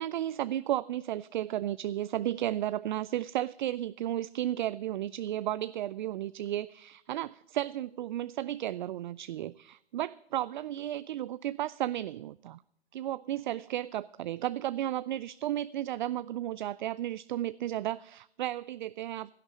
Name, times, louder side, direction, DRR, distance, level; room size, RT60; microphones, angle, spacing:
voice 1, 0.0-12.6 12.9-19.3, right 13 dB, 50° right, 18 dB, 0.4 m, -33 dB
16.5 x 12.0 x 5.0 m, 0.75 s
hypercardioid pair, 135°, 32 cm